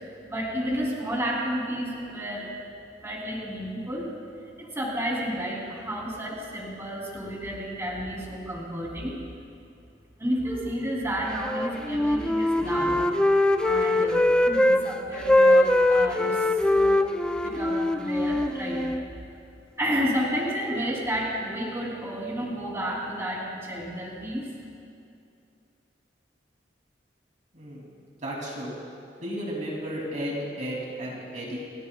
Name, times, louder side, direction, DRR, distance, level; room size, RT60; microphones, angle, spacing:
voice 1, 0.3-2.5 3.0-4.1 4.6-9.2 10.2-13.0 13.6-17.1 17.4-18.8 19.8-24.5, equal, 15° right, -4 dB, 3.2 m, -31 dB
Wind instrument woodwind instrument, 11.4-14.8 15.1-19.0, left 1 dB, 5° left, 0.5 m, -22 dB
voice 2, 12.6-13.0 27.5-27.8 28.2-28.7 29.2-31.6, equal, 45° right, -4 dB, 2.9 m, -34 dB
29.5 x 15.0 x 2.4 m, 2.5 s
head